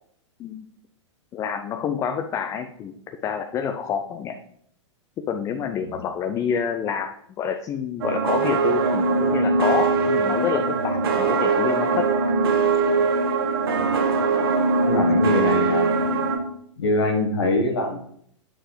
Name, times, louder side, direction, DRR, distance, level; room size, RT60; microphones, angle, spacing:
voice 1, 1.3-4.4 5.3-7.1 7.4-12.1, left 7 dB, 20° left, 7 dB, 0.5 m, -27 dB
sound 1, 8.0-16.4, right 4 dB, 50° right, 1.2 m, -21 dB
voice 2, 14.8-16.1 16.8-18.0, left 2 dB, 60° left, 3 dB, 1.3 m, -24 dB
8.9 x 6.4 x 3.2 m, 0.66 s
figure-of-eight pair, 105°, 16 cm